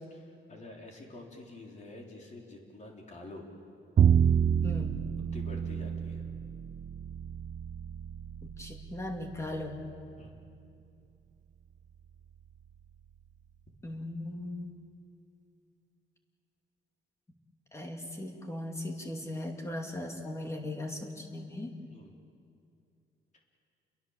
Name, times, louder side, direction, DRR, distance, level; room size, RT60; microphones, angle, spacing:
voice 1, 0.1-3.5 5.3-6.3 10.2-10.4 21.9-22.2, left 2 dB, 40° left, 0 dB, 3.9 m, -48 dB
Bowed string instrument, 4.0-10.1, right 8 dB, 40° right, 0.6 m, -29 dB
voice 2, 4.6-5.0 8.4-9.8 13.8-14.7 17.7-21.8, left 1 dB, 15° left, 2 dB, 2.6 m, -38 dB
29.5 x 22.5 x 7.3 m, 2.5 s
wide cardioid pair, 155°, 19 cm